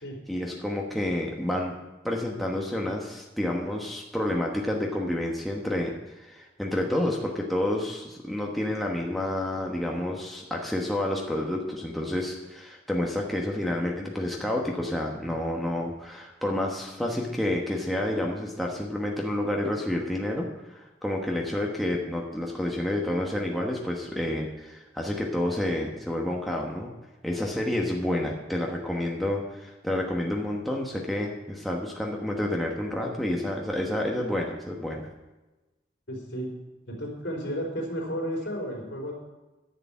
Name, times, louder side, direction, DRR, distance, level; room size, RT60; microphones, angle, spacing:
voice 1, 0.3-1.7 2.0-26.9 27.2-35.0, left 1 dB, ahead, -2 dB, 1.1 m, -29 dB
voice 2, 36.1-36.5 36.9-39.1, equal, 70° left, 0 dB, 3.8 m, -32 dB
11.0 x 6.7 x 8.5 m, 1.1 s
head